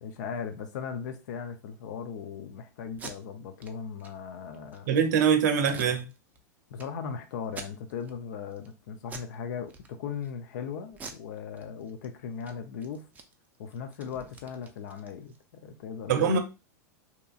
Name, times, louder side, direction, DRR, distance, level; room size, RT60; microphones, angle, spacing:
voice 1, 0.0-4.9 5.6-5.9 6.7-9.7 10.0-13.1 13.6-16.4, left 6 dB, 70° left, 0.4 m, -38 dB
Packing tape duct tape, 2.9-3.1 3.6-3.7 4.0-4.1 4.5-4.9 5.6-6.4 6.8-6.9 7.4-8.1 8.5-8.7 9.0-9.3 9.7-10.3 10.9-12.1 12.3-12.5 12.8-15.4, right 4 dB, 15° right, 0.4 m, -46 dB
voice 2, 4.9-6.1 16.1-16.4, right 6 dB, 75° right, 0.5 m, -23 dB
2.8 x 2.4 x 2.3 m
hypercardioid pair, 125°, 10 cm